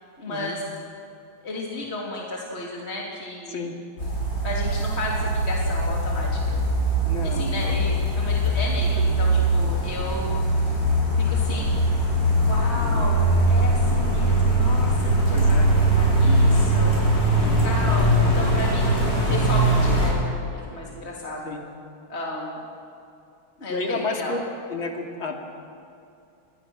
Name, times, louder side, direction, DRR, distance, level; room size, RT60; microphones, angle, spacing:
voice 1, 0.2-0.6 1.4-3.7 4.4-6.7 7.2-10.4 11.2-11.9 12.4-19.0 19.3-21.6 22.1-22.6 23.6-24.4, left 1 dB, 30° left, -3 dB, 3.3 m, -33 dB
sound 1, 4.0-20.1, right 1 dB, 45° left, 8.2 m, -21 dB
voice 2, 7.1-7.8 12.8-13.1 15.3-15.7 17.4-17.8 21.4-21.6 23.7-24.4 24.7-25.4, left 3 dB, 70° left, 2 dB, 3.3 m, -31 dB
28.5 x 21.5 x 6.3 m, 2.6 s
omnidirectional pair, 2.2 m